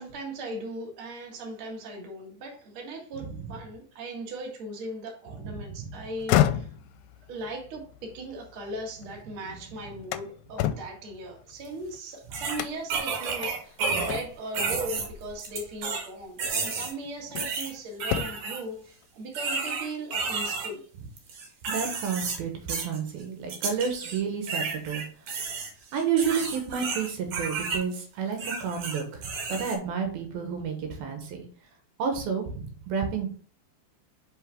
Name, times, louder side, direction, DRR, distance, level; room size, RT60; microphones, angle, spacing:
voice 1, 0.0-6.7 7.3-20.9, right 1 dB, 45° right, -1 dB, 2.1 m, -38 dB
voice 2, 5.4-5.9 21.7-25.4 25.9-31.5 32.0-33.3, right 6 dB, 75° right, 3 dB, 3.0 m, -30 dB
sound 1, 6.1-9.2 9.6-12.0 12.5-13.0 13.4-13.6 14.1-14.6 15.8-16.0 16.6-17.7 18.0-18.6, left 12 dB, 90° left, 2.6 m, -30 dB
sound 2, 11.7-11.8 12.3-14.2 14.5-16.1 16.4-16.9 17.4-18.6 19.3-20.7 21.2-22.4 22.7-23.0 23.5-24.2 24.5-27.8 28.3-29.8, right 4 dB, 60° right, 2.6 m, -31 dB
5.9 x 5.7 x 3.5 m, 0.43 s
omnidirectional pair, 4.5 m